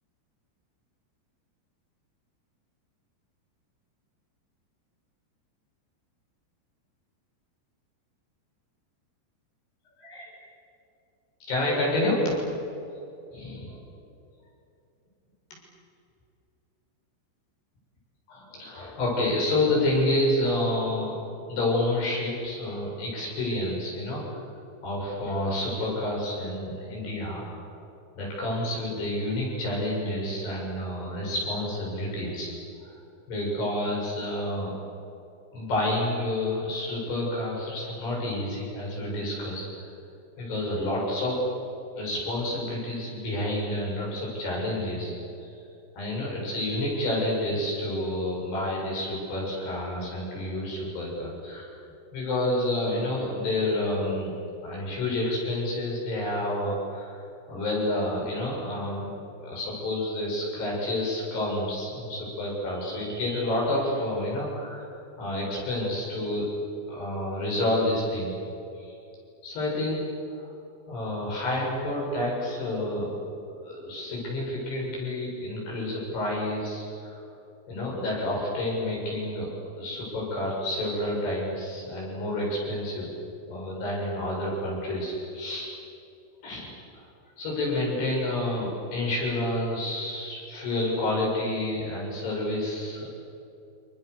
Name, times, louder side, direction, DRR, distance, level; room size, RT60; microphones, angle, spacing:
voice 1, 10.0-10.3 11.4-12.4 13.3-13.8 18.3-21.1 21.5-24.4 24.8-27.8 28.2-32.5 33.3-34.7 35.5-39.9 40.4-41.4 42.0-45.2 45.4-45.5 46.0-51.8 52.1-54.3 54.6-57.2 57.5-59.1 59.4-64.9 65.2-66.5 66.9-68.4 68.8-68.9 69.4-70.0 70.9-77.2 77.7-79.5 79.8-83.1 83.5-85.7 86.4-86.7 87.4-93.1, left 1 dB, 65° left, -3 dB, 9.8 m, -29 dB
28.5 x 28.0 x 7.0 m, 2.7 s
omnidirectional pair, 5.2 m